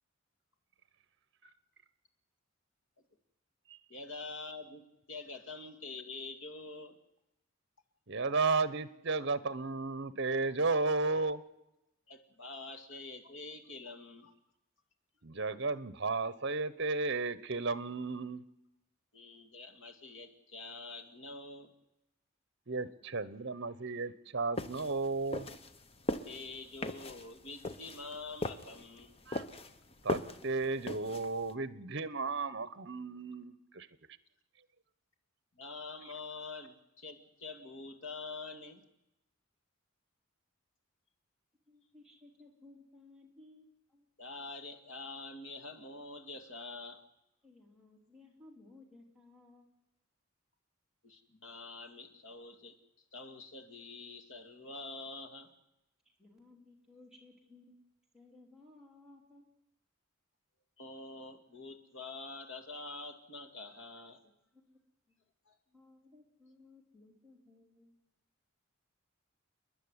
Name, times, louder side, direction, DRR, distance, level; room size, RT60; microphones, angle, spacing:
voice 1, 3.9-7.0 12.1-14.3 19.1-21.7 26.3-29.1 35.6-38.8 44.2-47.0 51.0-52.8 53.1-55.5 60.8-64.2 65.5-65.6, left 3 dB, 70° left, 6 dB, 2.3 m, -46 dB
voice 2, 8.1-11.4 15.2-18.4 22.7-25.5 29.3-29.4 30.0-33.9, right 3 dB, 55° right, 15 dB, 1.0 m, -34 dB
sound 1, 24.6-31.5, left 2 dB, 30° left, 0.9 m, -39 dB
voice 3, 41.7-44.1 47.4-49.7 56.2-57.8 58.1-59.4 64.2-64.8 65.1-65.2 65.7-67.9, left 2 dB, ahead, -3 dB, 3.5 m, -59 dB
29.5 x 10.5 x 9.8 m, 0.89 s
head